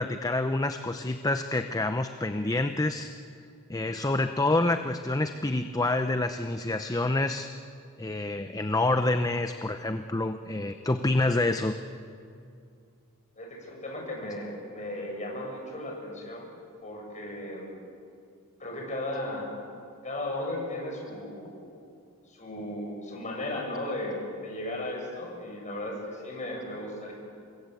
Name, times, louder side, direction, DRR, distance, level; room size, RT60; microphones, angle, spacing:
voice 1, 0.0-3.1 3.7-7.5 8.0-11.8, left 2 dB, 15° left, 8 dB, 0.7 m, -27 dB
voice 2, 13.4-16.5 16.8-17.8 18.6-19.5 20.0-21.7 22.3-27.1, left 1 dB, 35° left, -1 dB, 7.6 m, -36 dB
28.5 x 23.0 x 8.4 m, 2.5 s
head